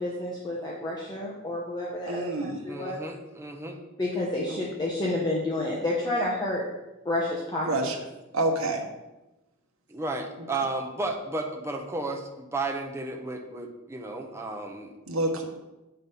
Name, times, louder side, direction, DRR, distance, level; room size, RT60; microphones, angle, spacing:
voice 1, 0.0-3.0 4.0-6.6 7.0-7.7, left 1 dB, 20° left, -4 dB, 0.9 m, -30 dB
voice 2, 2.1-2.6 4.5-4.6 7.6-8.0 8.3-8.8 15.1-15.4, right 2 dB, 70° right, 2 dB, 1.2 m, -27 dB
voice 3, 2.7-3.8 9.9-15.0, right 2 dB, 10° right, 2 dB, 0.8 m, -33 dB
7.8 x 4.0 x 5.4 m, 1.0 s
head